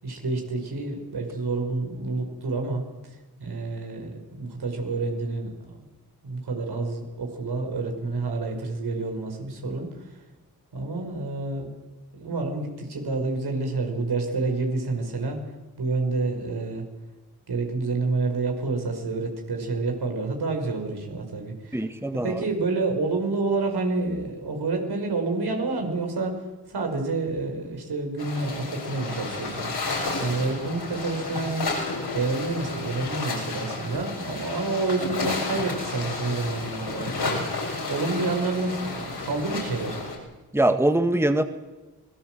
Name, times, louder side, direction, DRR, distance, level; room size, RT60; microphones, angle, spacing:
voice 1, 0.0-2.8 3.4-5.8 6.2-9.9 10.7-11.7 12.1-15.4 15.8-16.9 17.5-21.8 22.1-26.4 26.7-31.6 32.1-37.4 37.9-40.0, right 3 dB, 75° right, 3 dB, 5.6 m, -28 dB
voice 2, 21.7-22.4 40.5-41.4, right 1 dB, 5° right, 8 dB, 1.8 m, -22 dB
sound 1, 28.2-40.2, left 3 dB, 75° left, 7.1 m, -31 dB
26.0 x 18.5 x 7.8 m, 1.2 s
cardioid pair, 45°, 39 cm